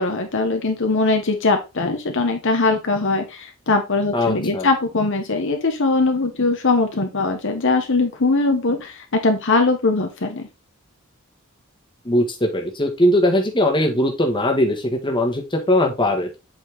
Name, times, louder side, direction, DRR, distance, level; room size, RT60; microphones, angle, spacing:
voice 1, 0.0-10.5, left 3 dB, 60° left, 5 dB, 1.0 m, -21 dB
voice 2, 4.1-4.7 12.0-16.4, left 1 dB, 20° left, 2 dB, 1.4 m, -20 dB
8.0 x 4.3 x 3.5 m, 0.27 s
head